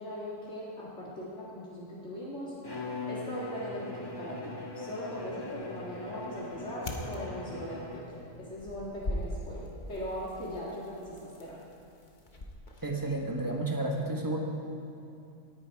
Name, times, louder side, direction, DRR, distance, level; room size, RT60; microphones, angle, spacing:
voice 1, 0.0-2.6 3.0-11.6, equal, 55° left, -7 dB, 2.2 m, -40 dB
Bowed string instrument, 2.6-8.3, left 2 dB, 20° left, 1.2 m, -40 dB
sound 1, 5.2-13.2, left 1 dB, 35° left, 1.2 m, -43 dB
voice 2, 12.8-14.4, right 2 dB, 15° right, 0 dB, 1.3 m, -31 dB
18.5 x 10.0 x 4.8 m, 2.7 s
omnidirectional pair, 1.5 m